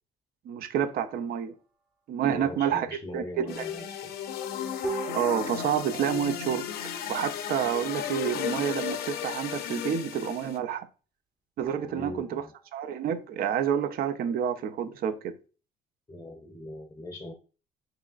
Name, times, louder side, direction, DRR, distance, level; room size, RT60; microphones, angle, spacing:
voice 1, 0.5-1.5 2.1-2.9 3.1-3.6 5.1-6.7 7.1-10.9 11.6-12.4 12.7-15.4, right 9 dB, 60° right, 0.5 m, -29 dB
sound 1, 1.0-1.9 2.5-2.6 2.8-2.9 3.2-3.8 4.8-7.7 11.6-14.1, right 3 dB, 25° right, 1.0 m, -43 dB
voice 2, 2.3-4.1 11.8-12.5 16.1-17.3, left 2 dB, 15° left, 0.6 m, -41 dB
sound 2, 3.5-10.6, left 9 dB, 70° left, 0.6 m, -34 dB
4.7 x 3.1 x 2.4 m
cardioid pair, 110°, 17 cm